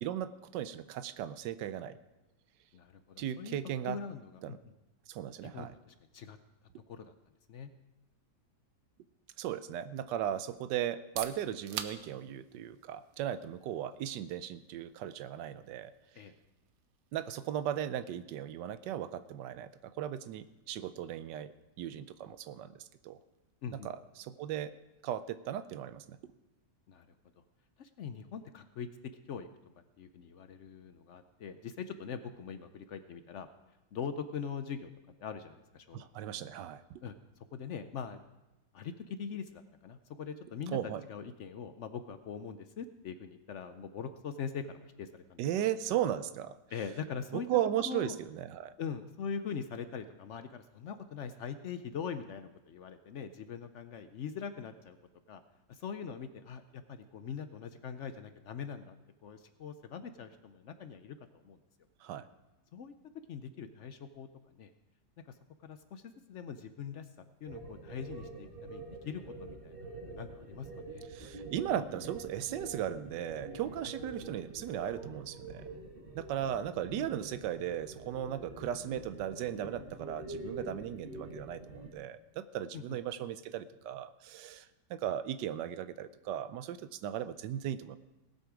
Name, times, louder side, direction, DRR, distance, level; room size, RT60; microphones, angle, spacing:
voice 1, 0.0-2.0 3.2-4.0 4.4-4.6 5.1-5.7 9.4-15.9 17.1-22.7 23.0-23.2 23.7-24.7 25.0-26.2 35.9-37.0 40.7-41.0 45.4-46.6 47.3-48.7 62.0-62.3 71.1-75.7 76.2-88.0, right 11 dB, 85° right, 14 dB, 1.2 m, -37 dB
voice 2, 2.7-3.6 3.8-4.7 5.4-6.4 6.9-7.1 7.5-7.7 16.2-16.3 23.6-23.9 26.9-27.1 27.8-29.5 30.0-33.5 33.9-34.9 35.2-36.3 37.0-37.2 37.5-38.2 38.7-45.7 46.7-47.5 47.9-48.2 48.8-55.0 55.3-55.4 55.7-58.9 59.2-61.6 62.7-62.9 63.3-64.3 64.5-64.7 65.3-65.4 65.6-69.8 70.1-71.0 73.8-74.0 77.0-77.1 82.7-83.0, left 6 dB, 65° left, 9 dB, 0.7 m, -42 dB
sound 1, 10.9-26.5, right 9 dB, 65° right, 1.0 m, -52 dB
sound 2, 67.5-81.9, right 2 dB, 30° right, 1.8 m, -46 dB
18.0 x 8.2 x 4.9 m, 1.0 s
omnidirectional pair, 1.9 m